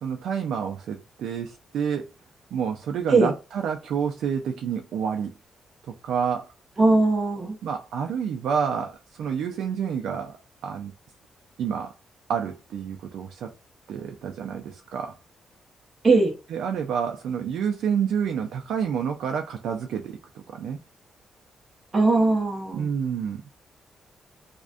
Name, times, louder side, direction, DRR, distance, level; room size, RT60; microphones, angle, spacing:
voice 1, 0.0-2.1 2.5-5.3 5.9-6.5 7.6-10.9 11.6-11.9 12.3-13.6 13.9-15.2 16.5-20.8 22.7-23.4, right 7 dB, 85° right, 0.3 m, -29 dB
voice 2, 6.8-7.5 16.0-16.3 21.9-22.9, right 3 dB, 30° right, 0.8 m, -20 dB
2.4 x 2.1 x 2.4 m
cardioid pair, 130°, 0 cm